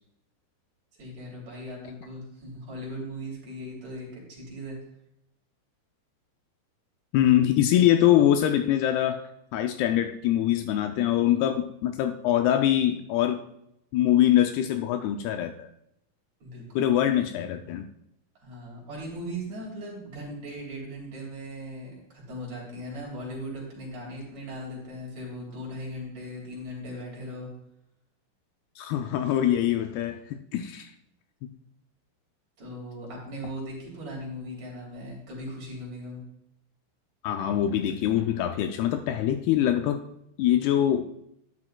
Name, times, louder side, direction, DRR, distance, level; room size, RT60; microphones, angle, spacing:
voice 1, 0.9-4.8 16.4-16.9 18.4-27.5 32.6-36.2, equal, 45° right, -3 dB, 3.7 m, -38 dB
voice 2, 7.1-9.2 9.5-13.4 13.9-15.7 16.8-17.9 28.8-30.9 37.2-40.0 40.4-41.0, left 11 dB, 80° left, 6 dB, 2.4 m, -23 dB
11.5 x 10.5 x 2.2 m, 0.78 s
omnidirectional pair, 4.8 m